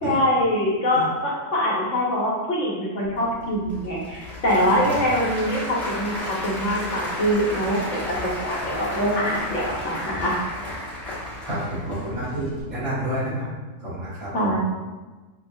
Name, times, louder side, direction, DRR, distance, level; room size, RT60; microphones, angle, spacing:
voice 1, 0.0-10.3 14.3-14.6, equal, 60° left, -4 dB, 1.1 m, -24 dB
Applause / Crowd, 3.0-12.6, left 1 dB, ahead, 1.0 m, -33 dB
voice 2, 11.4-13.5 13.8-14.6, right 1 dB, 80° right, -10 dB, 2.1 m, -29 dB
5.5 x 2.2 x 2.6 m, 1.2 s
omnidirectional pair, 1.5 m